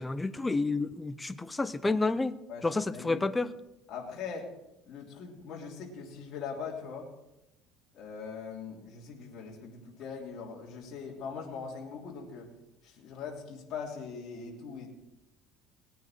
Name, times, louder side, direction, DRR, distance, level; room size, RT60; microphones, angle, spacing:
voice 1, 0.0-3.5, left 3 dB, 10° left, 0.5 m, -30 dB
voice 2, 2.5-3.3 3.9-4.5 4.9-7.1 7.9-12.5 12.8-14.9, left 5 dB, 45° left, 3.1 m, -41 dB
19.0 x 9.3 x 4.5 m
cardioid pair, 145°, 0 cm